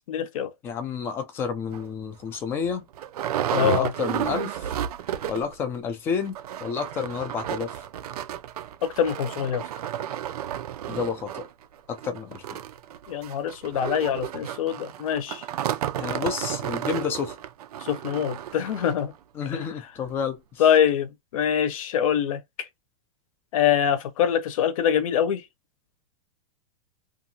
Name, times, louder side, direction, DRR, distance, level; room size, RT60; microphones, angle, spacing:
voice 1, 0.1-0.5 3.5-3.9 8.8-9.6 13.1-15.4 17.9-19.1 19.5-19.6 20.6-22.4 23.5-25.4, left 9 dB, 65° left, 0.7 m, -24 dB
voice 2, 0.6-2.9 3.5-4.7 5.3-7.7 10.9-11.5 11.9-12.6 16.0-17.4 19.3-20.6, left 6 dB, 10° left, 0.3 m, -30 dB
sound 1, 1.7-1.8 2.3-2.4 2.6-5.6 5.9-6.0 6.2-19.0 19.6-19.7 20.1-20.2, right 11 dB, 90° right, 0.5 m, -32 dB
2.6 x 2.4 x 2.7 m
supercardioid pair, 165°, 19 cm